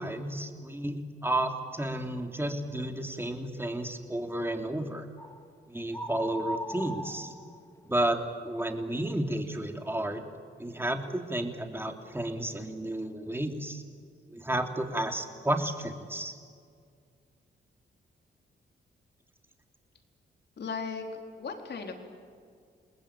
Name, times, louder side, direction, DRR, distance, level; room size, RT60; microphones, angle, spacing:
voice 1, 0.0-5.0 5.7-7.3 7.8-8.2 8.4-10.2 10.6-13.8 14.3-16.4, right 1 dB, 10° right, 4 dB, 3.1 m, -32 dB
sound 1, 5.2-5.4 5.9-8.0, equal, 15° left, 3.5 m, -38 dB
voice 2, 20.6-22.0, left 5 dB, 60° left, 3 dB, 4.1 m, -37 dB
29.0 x 20.0 x 9.0 m, 2.2 s
cardioid pair, 80°, 20 cm